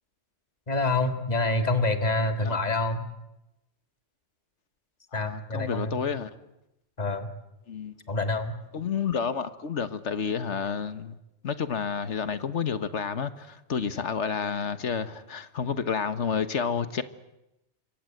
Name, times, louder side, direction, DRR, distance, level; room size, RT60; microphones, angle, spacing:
voice 1, 0.7-3.0 5.1-6.0 7.0-7.3 8.1-8.5, left 2 dB, 35° left, 2.3 m, -27 dB
voice 2, 5.1-6.3 7.7-7.9 8.7-11.2 11.4-17.0, left 6 dB, 85° left, 1.7 m, -30 dB
27.0 x 23.5 x 7.9 m
omnidirectional pair, 1.2 m